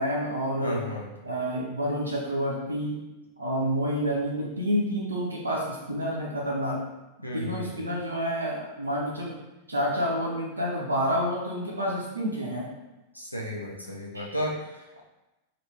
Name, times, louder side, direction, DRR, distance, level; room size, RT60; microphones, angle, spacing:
voice 1, 0.0-0.8 1.2-3.0 3.4-6.8 7.3-9.3 9.7-12.7 14.1-14.3, equal, 80° right, -3 dB, 0.5 m, -29 dB
voice 2, 0.6-1.1 7.2-7.8 13.1-15.0, equal, 90° left, -3 dB, 0.4 m, -34 dB
2.9 x 2.5 x 3.3 m, 1.0 s
figure-of-eight pair, 90°, 0 cm